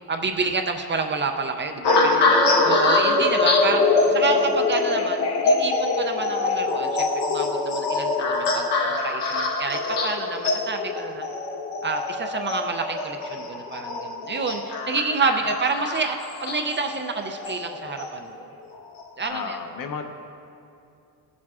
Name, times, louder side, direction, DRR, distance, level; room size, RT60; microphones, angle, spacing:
voice 1, 0.1-2.3 2.6-3.9 4.1-11.2 11.8-18.3 19.2-19.6, right 4 dB, 30° right, 4 dB, 0.4 m, -28 dB
sound 1, 1.8-18.3 19.0-19.3, left 3 dB, 90° left, 1.1 m, -24 dB
voice 2, 1.9-2.8 3.1-3.3 4.0-4.5 15.5-15.6 19.3-20.0, left 5 dB, 55° left, 5 dB, 0.8 m, -35 dB
15.5 x 7.3 x 2.4 m, 2.6 s
cardioid pair, 135°, 40 cm